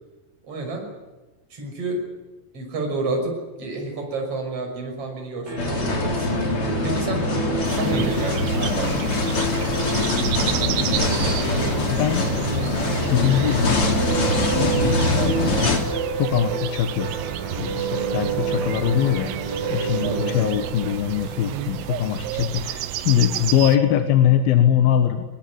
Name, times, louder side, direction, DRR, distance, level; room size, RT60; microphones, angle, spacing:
voice 1, 0.4-0.9 1.5-2.0 2.5-6.3 6.8-7.3 7.7-9.0 20.0-20.5, right 2 dB, 35° right, 2 dB, 6.8 m, -29 dB
sound 1, 5.5-22.2, right 5 dB, 15° right, 5.6 m, -29 dB
sound 2, 5.6-15.8, left 3 dB, 35° left, 3.7 m, -23 dB
sound 3, 7.6-23.8, right 12 dB, 80° right, 3.1 m, -32 dB
voice 2, 9.4-11.3 11.9-12.3 13.1-13.8 14.6-15.7 16.2-17.1 17.6-19.3 19.7-25.2, left 10 dB, 65° left, 7 dB, 3.0 m, -22 dB
23.0 x 21.5 x 9.6 m, 1.1 s
omnidirectional pair, 4.9 m